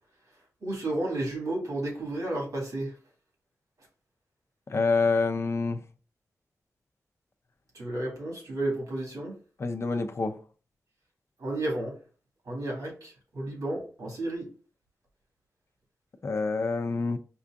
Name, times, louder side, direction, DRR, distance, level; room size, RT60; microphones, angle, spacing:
voice 1, 0.6-2.9 7.7-9.4 11.4-12.0 12.5-14.5, right 1 dB, 85° right, 1.8 m, -32 dB
voice 2, 4.7-5.8 9.6-10.4 16.2-17.2, left 4 dB, 50° left, 0.5 m, -27 dB
5.3 x 2.6 x 2.4 m
wide cardioid pair, 90°, 6 cm